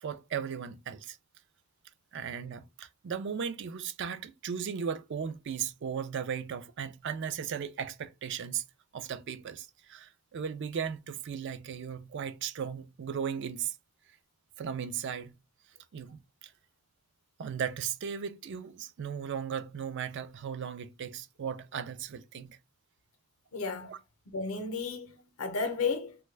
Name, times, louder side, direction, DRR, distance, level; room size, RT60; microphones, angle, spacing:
voice 1, 0.0-1.2 2.1-8.6 8.9-13.8 14.6-15.3 15.9-16.5 17.4-22.6 23.8-24.0, right 7 dB, 55° right, 0.3 m, -36 dB
voice 2, 23.5-23.9 24.3-26.2, left 4 dB, 70° left, 0.6 m, -33 dB
3.0 x 2.2 x 3.2 m
head